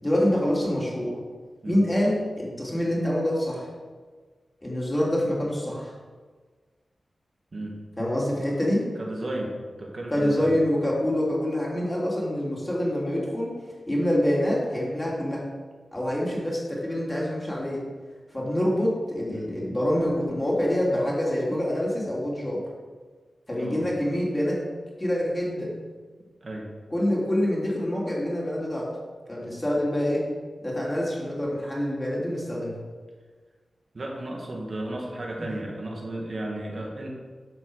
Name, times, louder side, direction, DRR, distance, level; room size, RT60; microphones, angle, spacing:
voice 1, 0.0-1.2 1.6-3.7 4.6-5.9 8.0-8.9 10.1-13.5 13.9-15.5 15.9-17.8 18.3-22.6 23.5-24.6 25.0-25.7 26.9-28.9 29.3-30.2 30.6-32.8, left 1 dB, 20° left, -4 dB, 3.5 m, -26 dB
voice 2, 9.0-10.5 19.3-19.5 23.6-23.8 26.4-26.7 29.4-29.6 33.9-37.1, right 1 dB, 50° right, -1 dB, 2.1 m, -34 dB
12.0 x 6.0 x 6.5 m, 1.5 s
wide cardioid pair, 90°, 0 cm